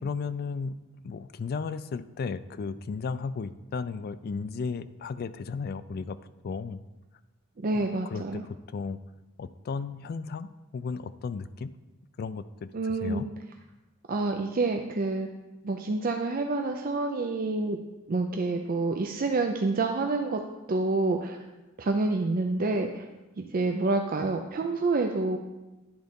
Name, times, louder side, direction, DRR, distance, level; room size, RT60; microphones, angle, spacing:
voice 1, 0.0-0.8 1.0-6.2 6.4-6.8 7.7-9.0 9.4-11.7 12.2-13.3, left 5 dB, 50° left, 13 dB, 0.3 m, -35 dB
voice 2, 7.6-8.4 12.7-13.2 14.1-15.3 15.6-17.8 18.1-20.4 20.7-21.4 21.8-23.1 23.4-25.4, right 3 dB, 45° right, 4 dB, 0.5 m, -28 dB
10.5 x 3.9 x 5.2 m, 1.1 s
head